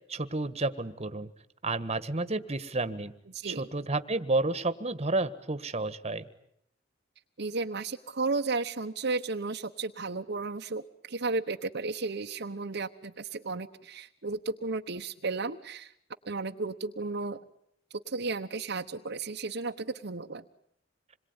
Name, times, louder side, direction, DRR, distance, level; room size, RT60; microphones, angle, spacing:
voice 1, 0.1-1.3 1.6-3.1 3.4-6.3, right 2 dB, 35° right, 12 dB, 1.6 m, -31 dB
voice 2, 3.3-3.7 7.4-15.9 16.2-17.4 18.1-20.4, right 3 dB, 60° right, 4 dB, 1.1 m, -34 dB
27.0 x 22.5 x 9.8 m, 0.73 s
head